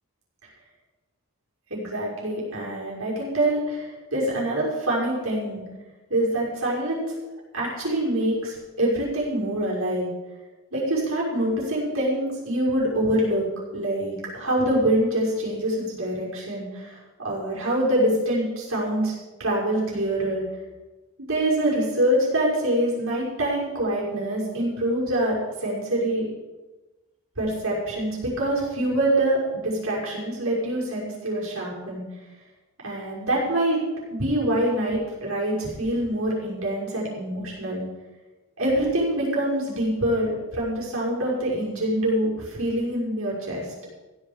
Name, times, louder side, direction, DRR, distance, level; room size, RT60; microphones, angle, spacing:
voice 1, 1.7-5.6 6.1-7.1 7.5-10.1 10.7-13.4 13.7-19.1 19.4-20.4 21.3-25.4 25.6-26.2 27.4-32.0 32.8-33.8 34.1-37.8 38.6-43.7, right 1 dB, 70° right, -4 dB, 6.1 m, -25 dB
15.5 x 8.8 x 7.3 m, 1.1 s
head